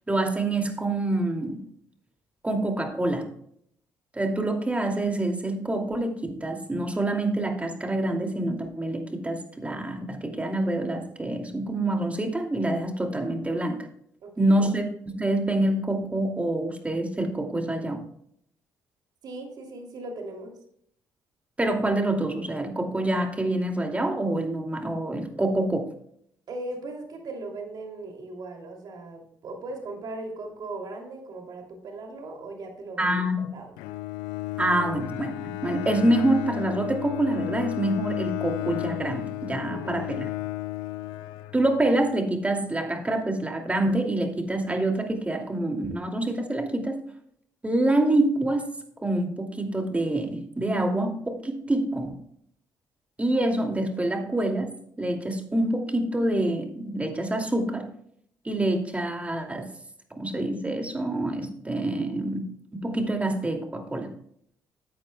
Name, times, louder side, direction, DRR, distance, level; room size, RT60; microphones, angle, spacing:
voice 1, 0.1-1.6 2.4-3.3 4.1-13.9 14.4-18.0 21.6-25.9 33.0-33.5 34.6-40.3 41.5-47.0 47.6-48.7 49.0-52.1 53.2-57.9 58.4-59.7 60.2-64.1, right 1 dB, 20° right, 3 dB, 2.6 m, -26 dB
voice 2, 14.2-14.7 19.2-20.5 26.5-33.8 39.7-40.0, right 2 dB, 60° right, 2 dB, 2.9 m, -38 dB
Bowed string instrument, 33.8-42.0, left 17 dB, 90° left, 0.4 m, -33 dB
14.0 x 8.6 x 2.3 m, 0.67 s
supercardioid pair, 65°, 8 cm